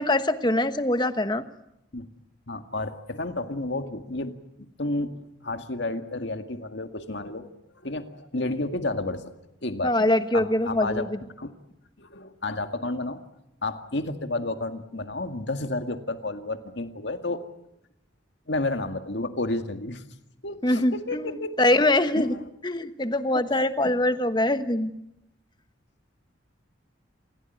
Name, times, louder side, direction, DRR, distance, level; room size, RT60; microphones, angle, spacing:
voice 1, 0.0-1.4 9.8-11.2 20.6-22.3 22.6-24.9, left 1 dB, 20° left, 10 dB, 1.2 m, -23 dB
voice 2, 2.5-4.3 4.8-7.5 7.8-9.2 9.6-9.9 10.3-11.0 11.4-11.5 12.0-13.2 13.6-17.4 18.5-20.0 20.4-21.6 22.1-22.4 23.8-23.9, left 2 dB, 60° left, 7 dB, 2.0 m, -31 dB
28.5 x 16.5 x 9.3 m, 0.84 s
head